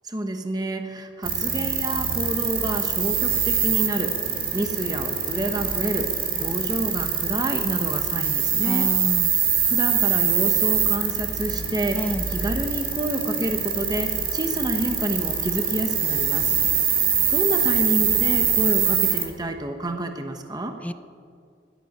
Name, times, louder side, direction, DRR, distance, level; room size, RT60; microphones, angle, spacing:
voice 1, 0.0-6.1 6.4-8.9 9.7-16.5 17.3-20.7, right 1 dB, 25° right, 5 dB, 1.0 m, -29 dB
sound 1, 1.2-19.3, right 7 dB, 55° right, 2.3 m, -24 dB
voice 2, 8.6-9.3 11.9-12.2 20.8-20.9, left 1 dB, 10° left, 12 dB, 0.4 m, -28 dB
15.5 x 12.5 x 6.6 m, 2.2 s
head